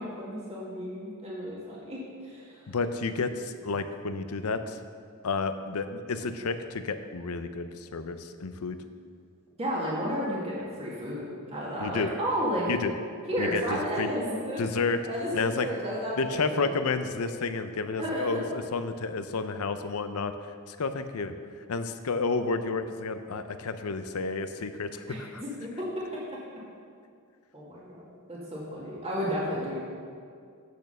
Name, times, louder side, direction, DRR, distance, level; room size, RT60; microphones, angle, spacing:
voice 1, 0.2-2.7 9.6-11.2 11.5-12.7 13.3-14.6 15.1-16.7 18.0-18.4 25.1-25.7 27.5-29.8, equal, 30° right, -6 dB, 2.0 m, -32 dB
voice 2, 2.7-4.8 5.2-8.8 11.8-12.1 12.7-12.9 13.4-14.1 14.6-15.0 15.3-15.7 16.2-20.3 20.7-21.3 21.7-25.4, left 4 dB, 80° left, 9 dB, 0.6 m, -31 dB
8.5 x 6.5 x 6.7 m, 2.3 s
head